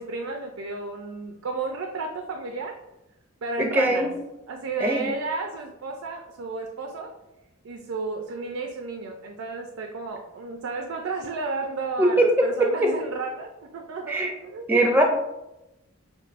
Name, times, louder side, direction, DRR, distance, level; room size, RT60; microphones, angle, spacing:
voice 1, 0.0-2.8 3.4-4.1 4.5-7.1 7.6-14.7, right 3 dB, 85° right, 3 dB, 0.4 m, -33 dB
voice 2, 3.6-4.1 4.8-5.0 12.0-12.9 14.1-14.3 14.7-15.0, right 1 dB, 10° right, 2 dB, 0.4 m, -21 dB
6.0 x 2.5 x 2.4 m, 0.94 s
head